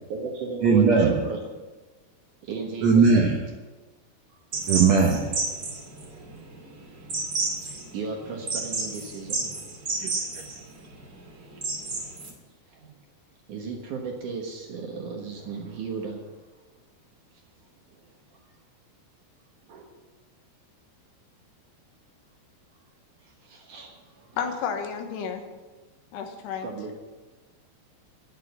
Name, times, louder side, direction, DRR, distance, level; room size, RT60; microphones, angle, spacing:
voice 1, 0.1-1.4 2.4-3.4 7.6-9.5 12.7-12.9 13.5-16.2 17.9-18.0 19.7-19.9 23.4-24.4 26.6-27.0, right 4 dB, 60° right, 1 dB, 2.3 m, -35 dB
voice 2, 0.6-1.2 2.8-3.4 4.7-5.4 10.0-10.4, right 5 dB, 80° right, 1 dB, 1.5 m, -19 dB
sound 1, 4.5-12.3, right 3 dB, 35° right, 2.1 m, -31 dB
voice 3, 24.4-25.4 26.1-26.7, left 6 dB, 80° left, 4 dB, 3.3 m, -31 dB
10.0 x 9.1 x 7.9 m, 1.2 s
omnidirectional pair, 4.9 m